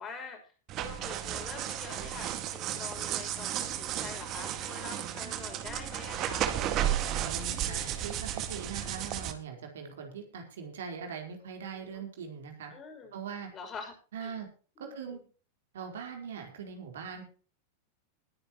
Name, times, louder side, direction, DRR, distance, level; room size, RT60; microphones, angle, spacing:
voice 1, 0.0-6.5 11.7-12.1 12.7-13.1 13.5-14.4 14.8-15.2, left 5 dB, 25° left, 3 dB, 6.3 m, -45 dB
sound 1, 0.7-9.3, right 11 dB, 35° right, 1.9 m, -33 dB
voice 2, 7.0-12.7 13.1-13.5 14.1-14.5 14.8-15.2 15.7-17.2, right 6 dB, 60° right, 3 dB, 4.2 m, -41 dB
20.5 x 10.5 x 3.0 m, 0.38 s
figure-of-eight pair, 90°, 0 cm